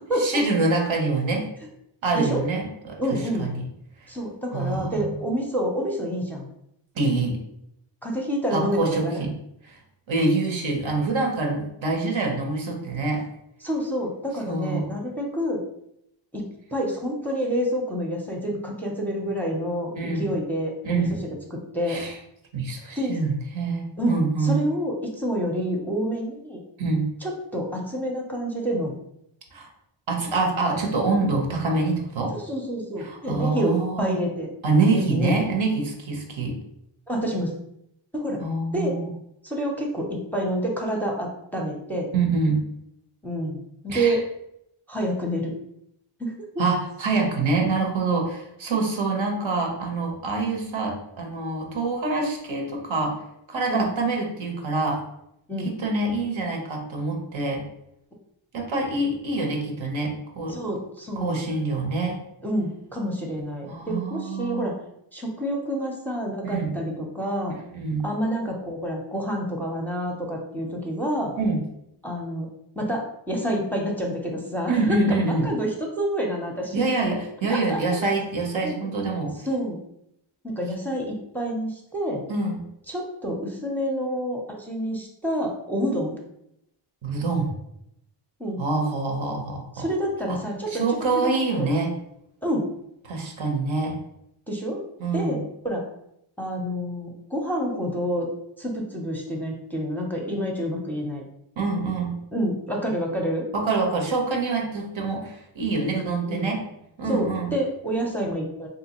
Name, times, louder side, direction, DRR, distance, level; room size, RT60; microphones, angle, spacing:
voice 1, 0.1-1.5 2.0-3.6 4.0-4.1 4.5-5.1 6.9-7.4 8.5-9.3 9.6-9.8 10.1-13.2 14.5-14.9 19.9-20.3 20.8-21.2 21.9-22.2 22.5-24.6 26.8-27.1 29.5-29.7 30.1-32.3 33.0-34.2 34.6-36.6 38.4-39.1 42.1-42.6 43.9-44.2 46.6-53.2 53.5-55.0 55.6-57.6 58.5-60.6 61.2-62.2 63.7-64.7 66.4-66.7 67.7-68.0 71.4-71.6 74.7-75.5 76.7-79.5 82.3-82.6 87.0-87.5 88.6-89.9 90.3-90.4 90.7-91.9 93.0-94.0 95.0-95.4 101.6-102.2 103.5-106.6 107.0-107.5, right 3 dB, 70° right, 1 dB, 0.9 m, -25 dB
voice 2, 3.0-3.5 4.1-6.5 8.0-9.2 13.6-15.6 16.3-22.0 23.0-23.2 24.0-26.6 27.2-29.0 32.3-34.5 34.9-35.4 37.1-37.5 38.1-38.4 38.7-39.0 39.4-42.1 43.2-43.6 43.8-44.2 44.9-45.5 46.2-46.6 53.7-53.9 55.5-55.7 60.5-61.4 62.4-64.8 65.1-67.5 68.0-71.3 72.0-72.5 72.8-76.8 77.5-77.8 78.6-78.7 79.5-79.8 80.4-82.2 82.9-86.2 88.4-88.6 89.8-90.7 91.2-91.7 92.4-92.7 94.5-94.8 95.1-95.8 96.4-98.3 98.6-101.2 102.3-103.4 106.3-106.5 107.1-108.7, equal, 5° left, -1 dB, 0.6 m, -28 dB
3.4 x 2.7 x 2.9 m, 0.77 s
wide cardioid pair, 65°, 48 cm